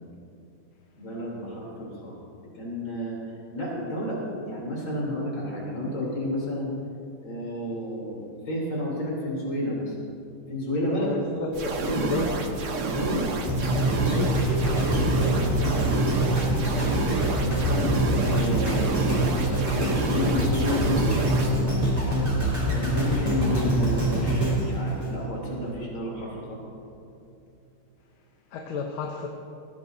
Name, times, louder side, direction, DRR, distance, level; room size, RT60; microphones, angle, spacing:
voice 1, 1.0-2.2 2.5-3.2 3.5-6.7 7.2-9.9 10.5-11.1 11.8-12.1 12.8-13.3 14.9-15.9 17.4-19.2 19.6-21.0 22.7-26.6, left 1 dB, 70° left, -4 dB, 4.2 m, -31 dB
voice 2, 10.9-12.4 14.1-14.4 28.5-29.3, left 4 dB, 90° left, 1 dB, 1.7 m, -31 dB
sound 1, 11.5-21.5, right 3 dB, 50° right, 1.1 m, -29 dB
sound 2, 13.5-25.7 26.2-26.3, right 1 dB, 10° right, 3.0 m, -25 dB
18.0 x 15.0 x 2.7 m, 2.6 s
omnidirectional pair, 2.2 m